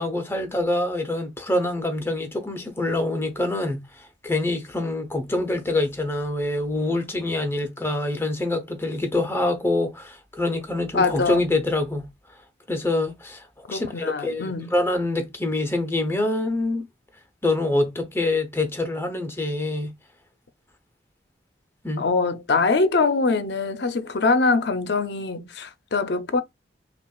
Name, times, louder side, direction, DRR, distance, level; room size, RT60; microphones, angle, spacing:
voice 1, 0.0-12.1 12.7-16.9 17.4-19.9 21.8-22.0, left 2 dB, 15° left, 0.7 m, -25 dB
voice 2, 10.9-11.4 13.7-14.7 22.0-26.4, left 3 dB, 65° left, 0.6 m, -23 dB
5.5 x 2.4 x 2.3 m
head